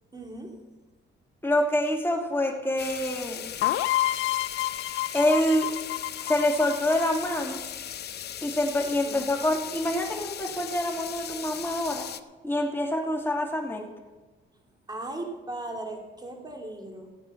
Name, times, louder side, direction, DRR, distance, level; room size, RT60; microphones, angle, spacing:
voice 1, 0.1-0.6 9.0-9.3 14.9-17.1, right 2 dB, 20° right, 2 dB, 3.0 m, -37 dB
voice 2, 1.4-3.5 5.1-5.7 6.2-7.6 8.4-12.1 12.4-13.9, left 1 dB, 10° left, 1 dB, 2.9 m, -26 dB
sound 1, 2.8-12.2, left 10 dB, 55° left, 0.7 m, -38 dB
sound 2, 3.6-7.3, left 15 dB, 85° left, 0.6 m, -29 dB
16.5 x 8.9 x 5.7 m, 1.3 s
cardioid pair, 90°, 20 cm